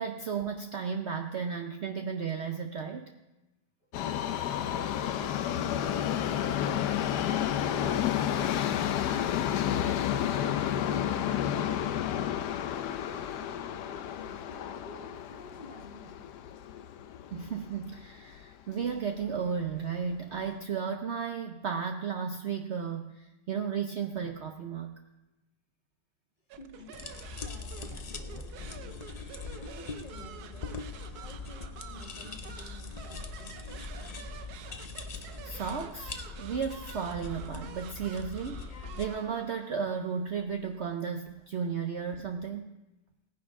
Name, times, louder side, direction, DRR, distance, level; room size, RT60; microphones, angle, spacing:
voice 1, 0.0-3.2 17.3-24.9 35.4-42.7, right 6 dB, 55° right, 5 dB, 0.8 m, -34 dB
Subway metro underground, 3.9-18.1 18.4-18.5 19.3-19.4 19.7-19.8 20.4-20.5, left 10 dB, 90° left, 1.2 m, -31 dB
voice 2, 13.8-16.7 26.6-27.0 27.4-28.9 29.6-30.8 31.1-34.3, left 1 dB, 30° left, 1 dB, 1.7 m, -51 dB
sound 1, 26.5-42.1, right 8 dB, 75° right, 1.2 m, -49 dB
sound 2, 26.9-39.1, left 4 dB, 65° left, 0.4 m, -42 dB
18.0 x 10.5 x 3.7 m, 1.0 s
omnidirectional pair, 1.7 m